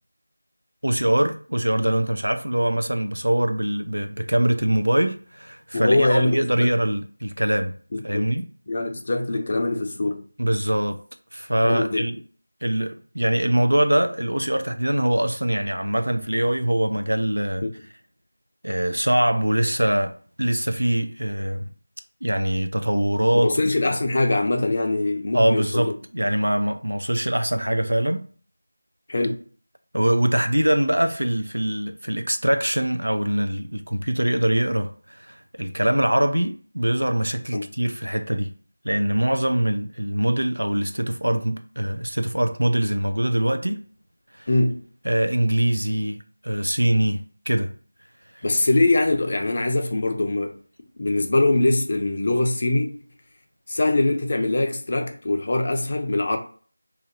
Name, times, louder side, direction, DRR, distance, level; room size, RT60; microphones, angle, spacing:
voice 1, 0.8-7.8 8.0-8.4 10.4-11.0 11.3-12.2 12.6-17.7 18.6-21.7 22.2-23.5 25.3-28.3 29.9-38.5 38.8-43.8 44.4-44.5 45.0-47.7 48.4-48.5, right 1 dB, 80° right, 0.5 m, -23 dB
voice 2, 5.7-6.7 7.9-8.3 8.7-10.3 11.6-12.0 17.6-17.7 23.3-25.9 29.1-29.4 37.5-37.7 44.5-44.8 48.4-50.6 51.0-53.0 53.7-56.4, left 2 dB, 40° left, 0.5 m, -22 dB
3.0 x 2.6 x 2.6 m
figure-of-eight pair, 170°, 0 cm